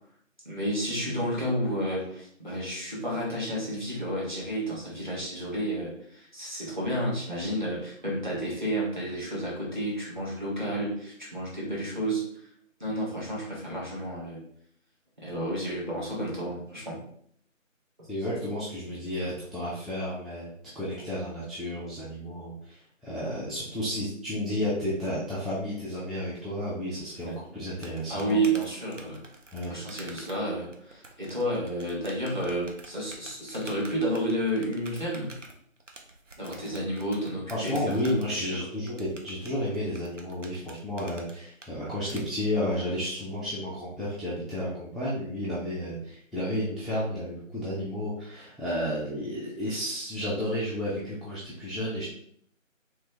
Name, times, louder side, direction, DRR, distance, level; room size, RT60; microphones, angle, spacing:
voice 1, 0.4-12.2 12.8-14.4 15.2-17.0 27.3-27.4 28.1-29.2 29.6-35.3 36.4-37.8 38.2-38.6, right 1 dB, 35° right, -5 dB, 1.4 m, -31 dB
voice 2, 18.1-20.5 20.7-28.4 29.5-29.8 37.5-52.1, left 1 dB, ahead, -9 dB, 0.5 m, -32 dB
sound 1, 27.2-42.2, right 2 dB, 65° right, 0.8 m, -49 dB
3.3 x 3.2 x 3.2 m, 0.64 s
figure-of-eight pair, 175°, 40 cm